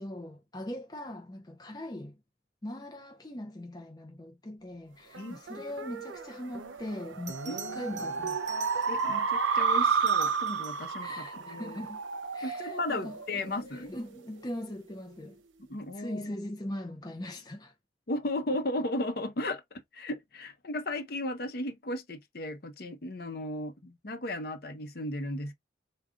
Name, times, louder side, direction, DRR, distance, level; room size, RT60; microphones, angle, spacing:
voice 1, 0.0-2.2 2.6-8.4 8.7-8.8 11.0-12.0 12.3-15.4 15.9-17.7, left 1 dB, 20° left, 0.5 m, -41 dB
sound 1, 5.1-14.0, right 5 dB, 85° right, 0.7 m, -31 dB
Bell, 6.6-6.7 7.3-9.2 9.9-11.0 13.7-13.9, right 7 dB, 35° right, 0.9 m, -46 dB
voice 2, 7.5-7.8 8.9-11.1 11.5-11.8 12.4-13.9 15.7-16.3 18.1-19.6 19.9-25.5, left 1 dB, 50° left, 0.7 m, -35 dB
3.7 x 2.2 x 3.7 m
head